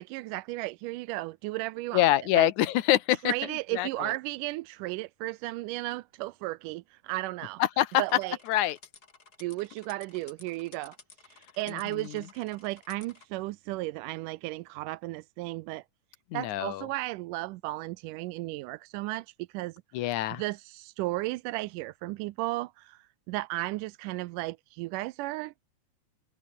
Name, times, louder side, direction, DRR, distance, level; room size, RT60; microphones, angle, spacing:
voice 1, 0.0-2.0 2.3-2.5 3.2-7.6 8.0-8.4 9.4-11.0 11.3-15.8 16.3-19.8 20.4-25.5, right 19 dB, 90° right, 2.2 m, -34 dB
voice 2, 1.9-3.3 3.7-4.1 7.6-8.0 8.5-8.8 11.7-12.2 16.3-16.9 19.9-20.4, left 14 dB, 75° left, 2.4 m, -25 dB
sound 1, 7.9-13.3, left 4 dB, 30° left, 3.1 m, -54 dB
open air
omnidirectional pair, 3.7 m